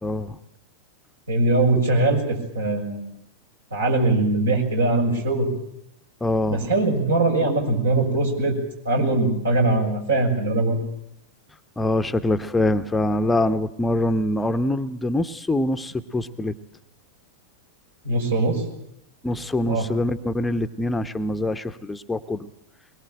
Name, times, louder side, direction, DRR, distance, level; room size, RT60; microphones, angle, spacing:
voice 1, 0.0-0.4 6.2-6.7 11.8-16.6 19.2-22.5, left 1 dB, 10° left, 10 dB, 0.9 m, -24 dB
voice 2, 1.3-3.0 3.7-5.5 6.5-8.5 8.8-10.8 18.0-18.6 19.7-19.9, right 2 dB, 70° right, 2 dB, 6.7 m, -21 dB
22.5 x 22.0 x 9.0 m, 0.77 s
figure-of-eight pair, 90°, 0 cm